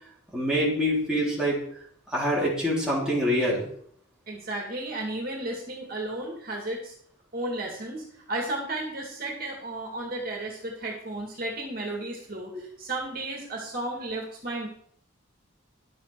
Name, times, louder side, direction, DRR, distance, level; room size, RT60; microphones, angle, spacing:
voice 1, 0.3-1.6 2.1-3.7, equal, 5° right, -7 dB, 3.5 m, -25 dB
voice 2, 4.3-6.9 7.3-14.7, right 2 dB, 45° right, -1 dB, 2.3 m, -33 dB
11.5 x 7.6 x 4.8 m, 0.63 s
head